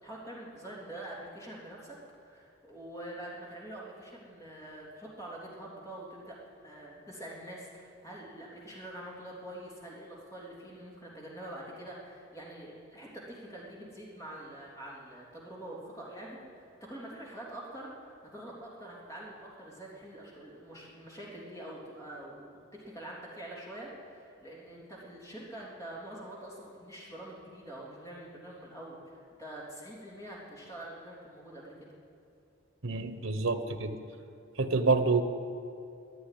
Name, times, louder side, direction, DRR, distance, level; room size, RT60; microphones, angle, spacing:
voice 1, 0.0-2.0 2.2-6.4 6.6-31.9, right 1 dB, 15° left, -5 dB, 3.3 m, -45 dB
voice 2, 32.8-34.0 34.6-35.2, right 4 dB, 85° right, 9 dB, 1.1 m, -27 dB
14.0 x 9.5 x 10.0 m, 2.5 s
head